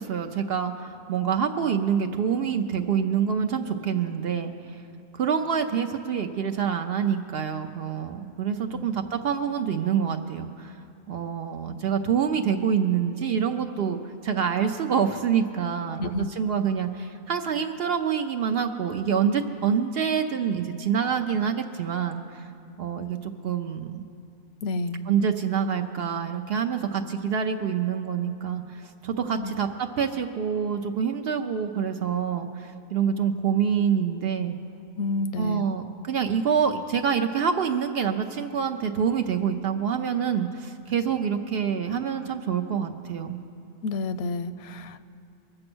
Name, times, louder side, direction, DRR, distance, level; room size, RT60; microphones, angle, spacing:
voice 1, 0.0-4.8 5.1-10.8 11.1-22.5 22.8-24.0 25.1-34.6 35.4-43.4, right 7 dB, 70° right, 5 dB, 0.9 m, -26 dB
voice 2, 16.0-16.3 24.6-25.1 29.4-29.6 35.0-35.7 43.8-45.1, left 3 dB, 80° left, 13 dB, 0.8 m, -30 dB
22.5 x 7.7 x 6.1 m, 2.5 s
omnidirectional pair, 1.1 m